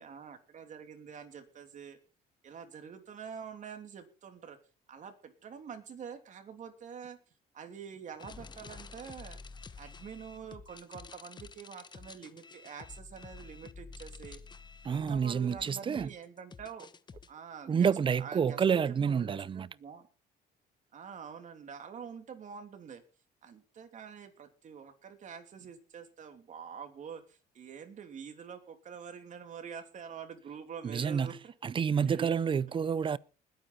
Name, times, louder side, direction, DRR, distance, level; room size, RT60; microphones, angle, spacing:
voice 1, 0.0-2.0 2.4-4.6 4.9-7.2 7.5-9.4 9.8-14.4 14.9-16.9 17.3-17.9 18.2-20.1 20.9-23.0 23.4-31.5 32.0-32.3, right 7 dB, 45° right, 3.1 m, -46 dB
sound 1, 8.2-17.3, left 4 dB, 25° left, 1.0 m, -50 dB
voice 2, 14.8-16.1 17.7-19.7 30.8-31.3 31.6-33.2, right 7 dB, 30° right, 0.6 m, -29 dB
20.5 x 9.2 x 4.3 m
cardioid pair, 110°, 17 cm